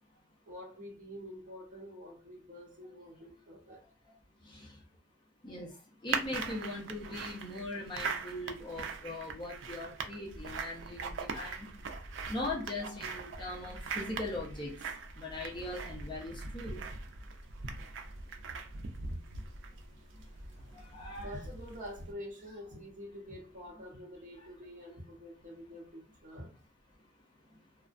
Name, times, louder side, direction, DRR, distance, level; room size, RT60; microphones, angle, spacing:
voice 1, 0.5-3.8 17.2-17.5 19.1-19.2 21.0-26.5, equal, 40° right, 0.7 m, -47 dB
voice 2, 4.4-4.8 5.4-11.7 12.3-16.9 17.2-17.3 17.8-17.9 18.2-18.3 19.4-19.5 20.1-21.3 27.5-27.6, left 2 dB, 25° left, 0.6 m, -41 dB
sound 1, 6.1-22.1, right 4 dB, 65° right, 0.4 m, -41 dB
2.4 x 2.1 x 2.4 m
head